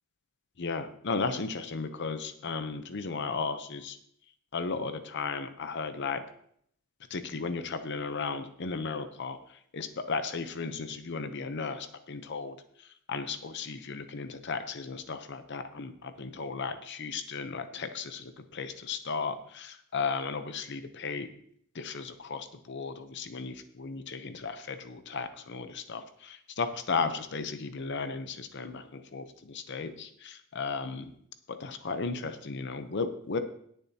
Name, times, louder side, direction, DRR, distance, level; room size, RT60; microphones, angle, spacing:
voice 1, 0.6-4.0 4.5-6.2 7.1-21.3 21.7-31.1 31.5-33.4, left 4 dB, 55° left, 9 dB, 0.7 m, -35 dB
18.5 x 7.0 x 2.8 m, 0.67 s
head